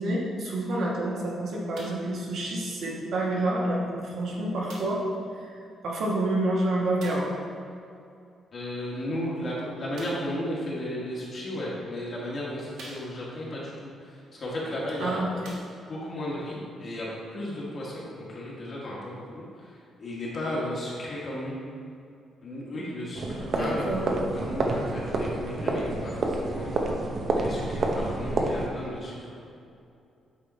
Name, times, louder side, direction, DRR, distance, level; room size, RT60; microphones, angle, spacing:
voice 1, 0.0-5.0 5.3-7.3 15.0-15.3 23.6-24.0, right 1 dB, 60° right, -3 dB, 1.4 m, -28 dB
sound 1, 1.7-2.2 3.1-3.2 4.7-5.1 7.0-7.4 9.9-10.4 11.3-11.4 12.1-12.2 12.7-13.5 14.7-14.8 15.3-16.1 16.9-17.0, right 2 dB, 90° right, 1.4 m, -46 dB
voice 2, 8.5-15.2 15.9-21.6 22.4-29.4, left 1 dB, 40° left, -6 dB, 1.5 m, -35 dB
sound 2, 23.1-28.7, right 2 dB, 40° right, 0.7 m, -28 dB
8.5 x 3.7 x 4.1 m, 2.5 s
cardioid pair, 165°, 0 cm